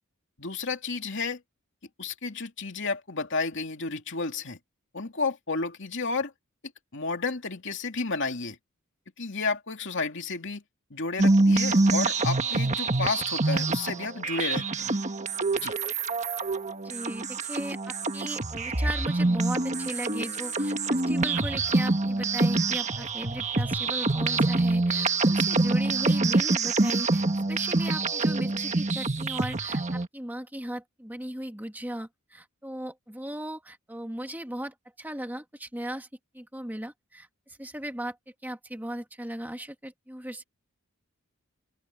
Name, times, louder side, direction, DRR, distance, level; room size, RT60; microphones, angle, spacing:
voice 1, 0.4-1.4 2.0-4.6 4.9-6.3 6.9-8.6 9.2-10.6 10.9-15.0 15.5-15.7, left 4 dB, 55° left, 2.7 m, -31 dB
sound 1, 11.2-30.1, right 3 dB, 30° right, 1.4 m, -26 dB
voice 2, 16.8-36.1 36.3-38.2 38.4-40.4, right 1 dB, 10° right, 2.1 m, -37 dB
open air
head